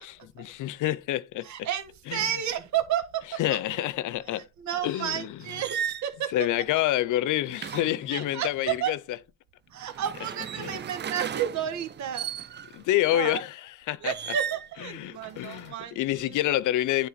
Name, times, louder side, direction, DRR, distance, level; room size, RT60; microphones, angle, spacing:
voice 1, 0.0-1.5 2.1-2.3 3.4-4.5 4.8-5.4 6.3-9.0 10.6-10.8 12.7-13.6 13.9-14.1 14.8-17.1, left 14 dB, 80° left, 0.7 m, -28 dB
voice 2, 1.4-3.2 3.7-3.8 4.6-6.3 8.1-8.9 9.7-12.3 13.1-13.4 14.0-16.3, right 10 dB, 70° right, 1.3 m, -31 dB
sound 1, 5.4-6.1 7.5-8.8 9.8-12.8 14.1-14.7 15.2-15.7, right 8 dB, 35° right, 0.5 m, -36 dB
9.6 x 3.9 x 4.0 m
cardioid pair, 90°, 30 cm